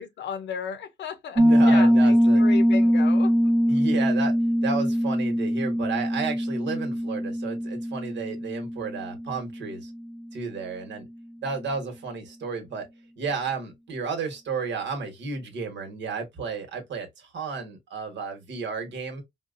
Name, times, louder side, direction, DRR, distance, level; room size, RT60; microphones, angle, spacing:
voice 1, 0.0-3.8, left 7 dB, 65° left, 0.7 m, -35 dB
Piano, 1.4-9.9, equal, 20° right, 0.6 m, -22 dB
voice 2, 1.4-2.4 3.7-4.3 4.6-9.9 10.3-11.0 11.4-12.9 13.2-19.2, right 5 dB, 65° right, 1.3 m, -32 dB
4.3 x 2.3 x 2.5 m
cardioid pair, 90°, 20 cm